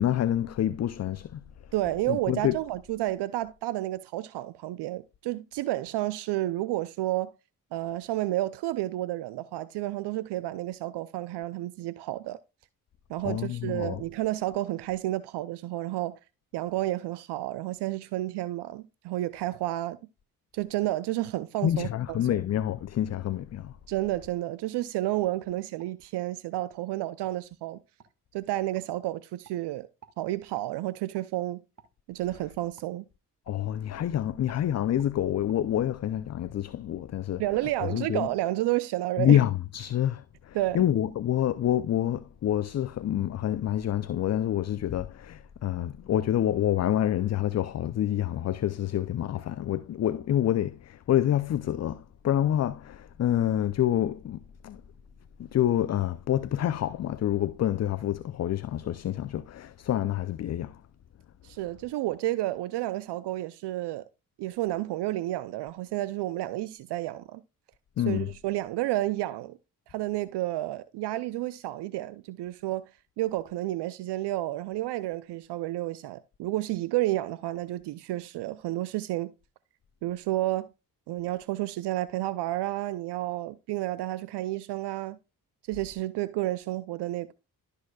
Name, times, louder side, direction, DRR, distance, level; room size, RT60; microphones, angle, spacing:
voice 1, 0.0-1.4 2.1-2.6 13.2-14.0 21.6-23.7 33.5-37.4 37.9-38.3 39.2-54.8 55.4-60.8 68.0-68.3, left 11 dB, 35° left, 0.5 m, -27 dB
voice 2, 1.7-7.3 7.7-12.4 13.1-16.2 16.5-20.0 20.5-22.4 23.9-27.8 28.3-29.9 30.2-31.6 32.1-33.0 37.4-39.4 40.5-40.8 61.4-64.0 64.4-67.4 68.1-69.6 69.9-72.9 73.2-79.3 80.0-80.7 81.1-85.2 85.7-87.3, right 16 dB, 65° right, 0.6 m, -31 dB
sound 1, 24.0-24.2 24.6-24.8 25.2-25.9 26.5-26.7 27.2-27.4 28.0-28.1 28.7-28.9 29.4-29.6 30.0-30.2 30.5-30.7 31.1-31.3 31.8-31.9 32.8-32.9 33.5-33.6 33.9-34.1 34.5-34.6 35.0-35.1 35.5-35.6, right 7 dB, 40° right, 1.9 m, -54 dB
12.5 x 6.6 x 2.3 m
hypercardioid pair, 45°, 45 cm